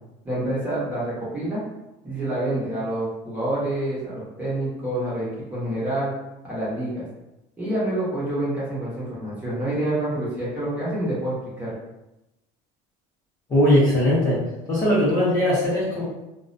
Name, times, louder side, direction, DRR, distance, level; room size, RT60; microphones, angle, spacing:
voice 1, 0.2-1.6 2.0-6.1 6.5-7.0 7.6-11.7, right 1 dB, 10° right, -9 dB, 0.9 m, -27 dB
voice 2, 13.5-14.4 14.7-16.0, left 1 dB, 25° left, -9 dB, 0.7 m, -19 dB
2.4 x 2.1 x 2.5 m, 0.95 s
cardioid pair, 160°, 16 cm